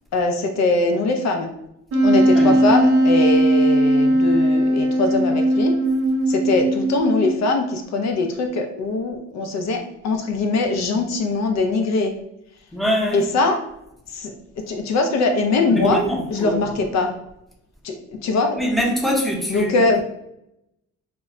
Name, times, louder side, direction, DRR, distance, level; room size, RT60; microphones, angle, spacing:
voice 1, 0.1-1.5 2.0-5.7 6.3-12.1 13.1-13.6 14.1-14.3 14.7-16.0 16.3-17.1 17.8-18.0 18.2-18.6 19.5-20.0, left 3 dB, 65° left, 4 dB, 0.5 m, -21 dB
Wind instrument woodwind instrument, 1.9-7.6, right 1 dB, 50° right, 0.6 m, -18 dB
voice 2, 12.7-13.3 15.7-16.6 18.5-19.8, equal, ahead, -1 dB, 0.7 m, -23 dB
2.1 x 2.0 x 3.6 m, 0.82 s
cardioid pair, 90°, 30 cm